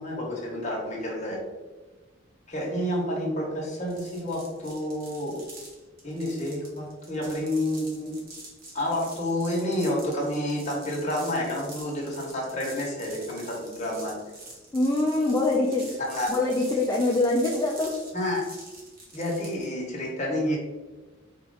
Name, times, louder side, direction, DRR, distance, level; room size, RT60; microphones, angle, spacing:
voice 1, 0.0-1.4 2.5-5.4 6.0-8.1 8.7-14.2 16.0-16.3 18.1-18.4 19.1-20.6, left 1 dB, 35° left, -3 dB, 1.1 m, -29 dB
sound 1, 3.9-19.7, right 2 dB, 45° right, 1.0 m, -46 dB
voice 2, 14.7-16.0 16.3-17.9, left 2 dB, 20° left, -1 dB, 0.4 m, -24 dB
4.5 x 2.5 x 3.8 m, 1.2 s
head